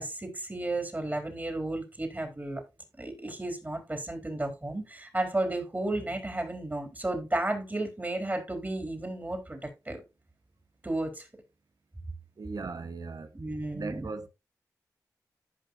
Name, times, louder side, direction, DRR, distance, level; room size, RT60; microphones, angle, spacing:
voice 1, 0.0-2.6 3.0-10.0 10.8-11.3 13.3-14.1, right 2 dB, 25° right, 3.8 m, -33 dB
voice 2, 12.4-13.3 13.7-14.3, right 4 dB, 65° right, 1.2 m, -38 dB
15.0 x 5.5 x 2.6 m
cardioid pair, 45°, 7 cm